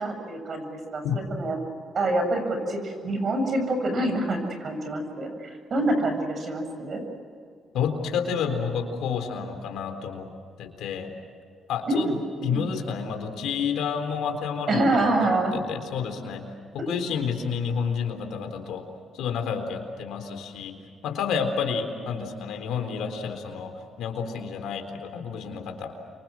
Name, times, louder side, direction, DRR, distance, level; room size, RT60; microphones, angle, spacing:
voice 1, 0.0-1.6 1.9-7.0 11.9-12.7 14.7-15.6, right 1 dB, 50° right, 5 dB, 7.5 m, -26 dB
voice 2, 7.7-10.3 10.6-11.1 11.7-12.2 12.4-18.8 19.1-20.8 21.0-25.9, left 6 dB, 80° left, 5 dB, 4.0 m, -30 dB
29.0 x 25.0 x 6.3 m, 2.2 s
cardioid pair, 90°, 0 cm